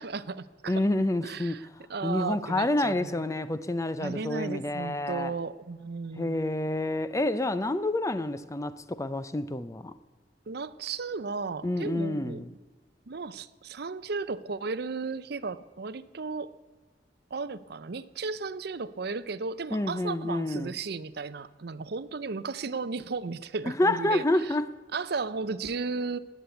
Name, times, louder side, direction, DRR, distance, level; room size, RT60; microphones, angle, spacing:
voice 1, 0.0-0.8 1.2-3.1 4.0-6.4 10.5-12.4 13.1-16.5 17.3-24.5 24.9-26.2, right 4 dB, 60° right, 0.6 m, -35 dB
voice 2, 0.7-1.6 2.0-5.3 6.2-9.9 11.6-12.5 19.7-20.7 23.7-24.6, left 1 dB, 20° left, 0.5 m, -28 dB
19.5 x 8.3 x 8.2 m
head